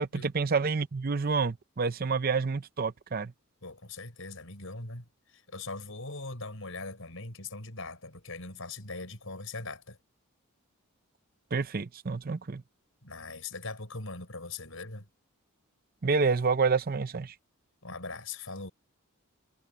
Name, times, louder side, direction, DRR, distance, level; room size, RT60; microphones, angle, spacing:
voice 1, 0.0-3.3 11.5-12.6 16.0-17.3, right 4 dB, 40° right, 0.6 m, -28 dB
voice 2, 3.6-10.0 13.0-15.1 17.8-18.7, left 3 dB, 65° left, 6.3 m, -41 dB
head